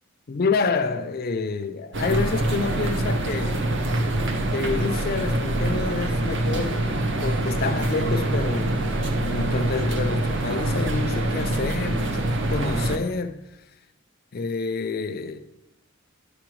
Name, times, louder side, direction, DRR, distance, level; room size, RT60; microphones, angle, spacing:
voice 1, 0.3-3.6 4.5-6.8 7.2-8.9 9.2-13.5 14.3-15.4, left 4 dB, 40° left, 0.4 m, -28 dB
sound 1, 1.9-13.0, right 1 dB, 55° right, 0.6 m, -25 dB
9.8 x 6.0 x 3.1 m
head